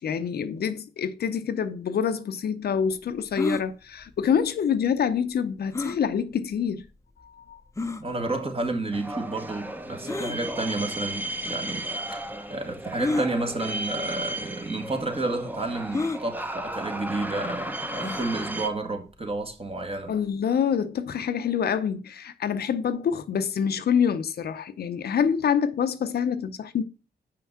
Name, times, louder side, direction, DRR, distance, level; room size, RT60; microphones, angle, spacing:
voice 1, 0.0-6.9 7.2-7.6 20.1-26.8, left 7 dB, 65° left, 0.7 m, -26 dB
sound 1, 3.3-3.6 5.7-6.0 6.8-6.9 7.8-8.0 10.0-10.4 11.4-11.5 13.0-13.3 14.2-14.4 14.6-14.7 15.9-16.2 17.9-18.3, left 3 dB, 15° left, 0.7 m, -29 dB
voice 2, 8.0-11.8 12.1-12.2 12.5-20.2, right 2 dB, 35° right, 1.8 m, -31 dB
sound 2, 8.9-18.7, right 1 dB, 10° right, 0.9 m, -34 dB
5.7 x 5.3 x 5.7 m
cardioid pair, 60°, 18 cm